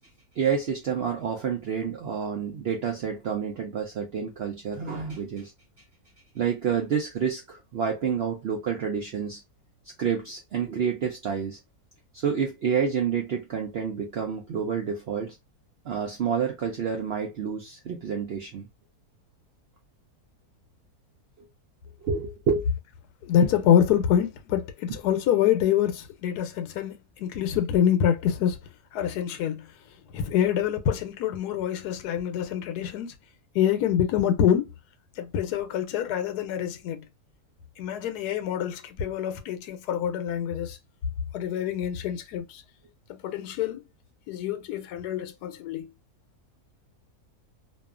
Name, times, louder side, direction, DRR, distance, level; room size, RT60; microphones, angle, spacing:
voice 1, 0.4-5.5 6.3-9.4 10.0-11.6 12.1-15.4 15.8-18.7 22.0-22.6, right 7 dB, 75° right, 0.5 m, -29 dB
voice 2, 23.2-28.6 28.9-29.7 30.1-33.1 33.5-34.7 35.2-37.0 37.8-40.8 41.3-42.6 43.1-43.8 44.3-45.9, left 9 dB, 85° left, 1.1 m, -26 dB
2.7 x 2.3 x 2.4 m
omnidirectional pair, 1.6 m